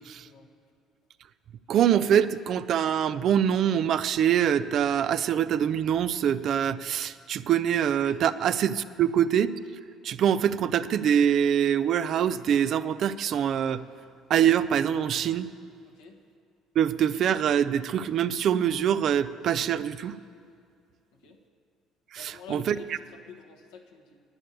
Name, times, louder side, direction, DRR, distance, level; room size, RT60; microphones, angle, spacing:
voice 1, 0.1-0.5 8.1-8.2 15.9-16.2 21.1-21.4 22.1-24.2, left 6 dB, 80° left, 2 dB, 1.5 m, -48 dB
voice 2, 1.7-9.5 10.0-13.8 14.3-15.5 16.8-20.2 22.1-22.8, right 9 dB, 60° right, 13 dB, 0.5 m, -24 dB
10.5 x 9.7 x 8.4 m, 2.2 s
hypercardioid pair, 60°, 0 cm